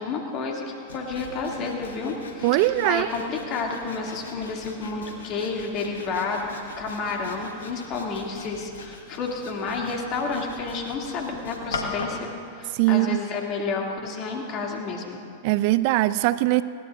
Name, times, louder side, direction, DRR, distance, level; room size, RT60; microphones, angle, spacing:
voice 1, 0.0-6.5 6.8-15.2, left 4 dB, 40° left, 0 dB, 2.5 m, -30 dB
Sawing, 0.9-12.3, left 3 dB, 75° left, 1.7 m, -39 dB
voice 2, 2.4-3.1 12.7-13.2 15.4-16.6, right 17 dB, 50° right, 16 dB, 0.4 m, -21 dB
20.5 x 17.0 x 2.5 m, 2.3 s
figure-of-eight pair, 95°, 0 cm